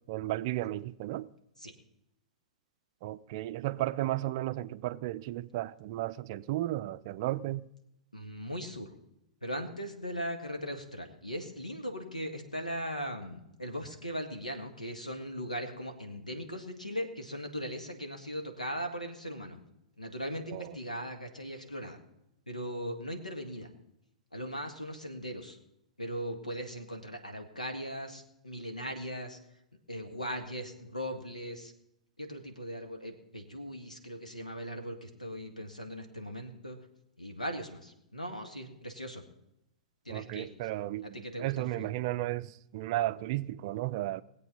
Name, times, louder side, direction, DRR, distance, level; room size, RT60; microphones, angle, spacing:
voice 1, 0.1-1.3 3.0-7.7 20.5-20.8 40.1-44.2, right 15 dB, 40° right, 0.4 m, -34 dB
voice 2, 8.1-8.9 9.4-19.6 20.0-22.0 22.5-23.7 24.3-25.6 26.0-29.4 29.9-31.7 32.2-36.8 37.2-39.2 40.1-40.5 41.0-41.9, equal, 85° left, 1.9 m, -39 dB
20.0 x 8.2 x 5.5 m
figure-of-eight pair, 105°, 4 cm